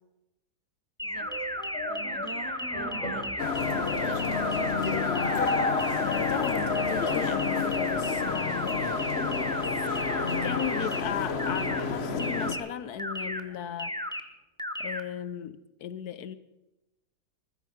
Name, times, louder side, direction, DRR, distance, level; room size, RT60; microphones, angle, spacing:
sound 1, 1.0-11.0 11.4-11.8 12.2-12.6 13.0-13.4 13.8-14.2 14.6-15.0, left 1 dB, 5° left, 0.3 m, -34 dB
sound 2, 1.1-13.8, equal, 25° left, 4.6 m, -44 dB
voice 1, 1.9-3.4 3.8-5.0, right 2 dB, 15° right, 8 dB, 0.8 m, -43 dB
sound 3, 3.4-12.5, left 5 dB, 40° left, 1.3 m, -29 dB
voice 2, 6.0-8.7 10.4-13.9 14.8-16.4, left 9 dB, 70° left, 14 dB, 1.3 m, -36 dB
20.0 x 14.0 x 5.0 m, 0.96 s
omnidirectional pair, 1.8 m